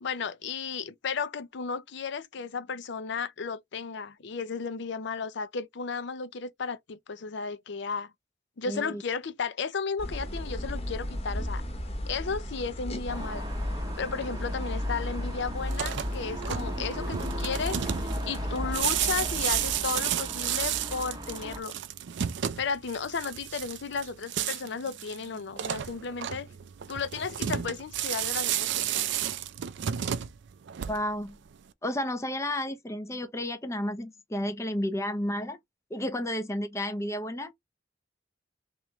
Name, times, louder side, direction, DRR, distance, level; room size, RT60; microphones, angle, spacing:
voice 1, 0.0-8.1 8.6-11.6 12.1-13.5 14.0-17.8 18.2-21.8 22.6-26.5 26.9-29.2, left 5 dB, 65° left, 0.6 m, -34 dB
voice 2, 8.7-9.0 30.9-31.4 31.8-35.6 35.9-37.5, left 1 dB, 15° left, 0.6 m, -32 dB
sound 1, 10.0-19.8, left 1 dB, 30° left, 0.9 m, -35 dB
sound 2, 13.1-21.6, right 1 dB, 20° right, 0.7 m, -39 dB
sound 3, 15.6-31.3, right 10 dB, 65° right, 0.4 m, -32 dB
3.1 x 3.0 x 3.5 m
head